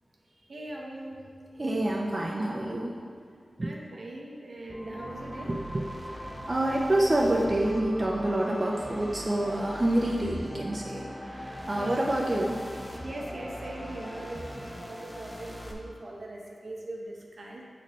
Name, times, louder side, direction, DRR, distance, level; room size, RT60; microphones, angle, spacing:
voice 1, 0.5-1.2 3.6-5.5 11.7-12.0 13.0-17.6, right 1 dB, 65° right, -2 dB, 0.9 m, -40 dB
voice 2, 1.6-2.9 3.6-3.7 5.4-5.9 6.5-11.0 11.3-12.6, right 1 dB, 35° right, -3 dB, 0.6 m, -27 dB
sound 1, 4.7-15.7, equal, ahead, 0.8 m, -40 dB
7.5 x 4.2 x 3.1 m, 2.1 s
wide cardioid pair, 65°, 0 cm